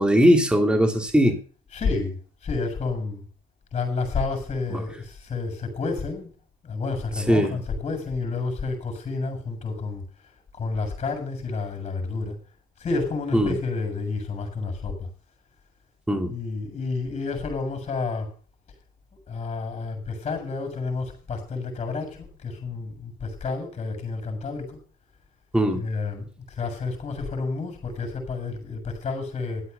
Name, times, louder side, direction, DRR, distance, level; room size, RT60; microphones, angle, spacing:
voice 1, 0.0-1.4 4.7-4.8 7.3-7.5 13.3-13.5 16.1-16.3 25.5-25.8, equal, 5° right, 2.8 m, -19 dB
voice 2, 1.7-3.3 3.7-6.3 6.6-10.0 10.5-12.4 12.8-15.1 16.3-18.3 19.3-24.8 25.7-29.6, left 4 dB, 40° left, 7.3 m, -30 dB
13.0 x 8.4 x 6.9 m
cardioid pair, 110°, 17 cm